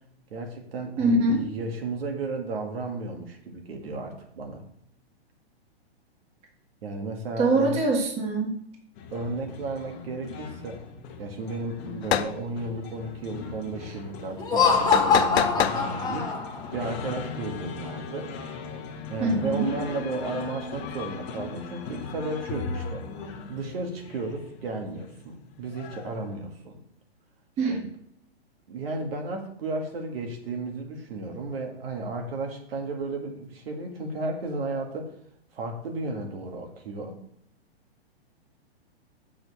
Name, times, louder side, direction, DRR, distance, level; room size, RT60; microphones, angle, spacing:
voice 1, 0.3-4.6 6.8-7.8 9.1-10.8 11.2-18.3 19.1-23.0 23.5-26.8 27.7-27.8 28.7-35.1 35.5-37.2, right 2 dB, 65° right, 3 dB, 2.0 m, -34 dB
voice 2, 1.0-1.4 7.4-8.5 19.2-19.7 27.6-27.8, right 2 dB, 20° right, 1 dB, 1.3 m, -23 dB
sound 1, 9.0-26.3, left 4 dB, 30° left, 1.2 m, -39 dB
sound 2, 12.0-12.3 14.9-15.8, left 10 dB, 80° left, 0.7 m, -25 dB
Laughter, 14.4-16.7, left 5 dB, 10° left, 1.3 m, -23 dB
6.7 x 6.1 x 4.2 m, 0.72 s
hypercardioid pair, 145°, 31 cm